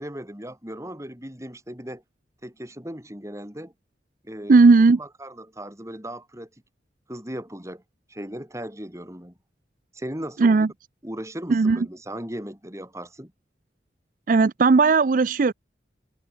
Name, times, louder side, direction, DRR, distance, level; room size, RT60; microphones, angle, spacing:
voice 1, 0.0-2.0 2.4-3.7 4.2-4.6 5.0-6.5 7.1-7.8 8.1-9.4 9.9-10.7 11.0-13.3, right 1 dB, 15° right, 6.1 m, -37 dB
voice 2, 4.5-5.0 10.4-10.7 11.5-11.8 14.3-15.5, right 4 dB, 50° right, 0.4 m, -16 dB
head